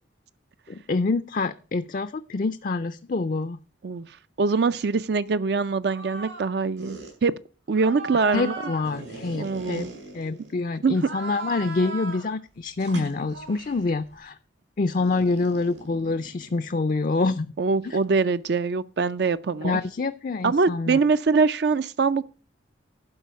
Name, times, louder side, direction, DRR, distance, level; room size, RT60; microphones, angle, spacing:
voice 1, 0.7-3.6 8.3-9.9 10.1-14.4 14.8-17.5 17.8-18.0 19.6-21.0, left 3 dB, 45° left, 0.4 m, -26 dB
voice 2, 3.8-7.3 7.7-8.6 9.3-9.9 10.8-10.9 17.6-19.8 20.4-22.2, right 4 dB, 55° right, 0.4 m, -23 dB
sound 1, 5.9-6.5 6.8-7.1 7.7-10.5 10.9-12.3 12.8-13.9 15.0-16.8, right 2 dB, 80° right, 5.0 m, -38 dB
11.5 x 4.8 x 8.1 m
head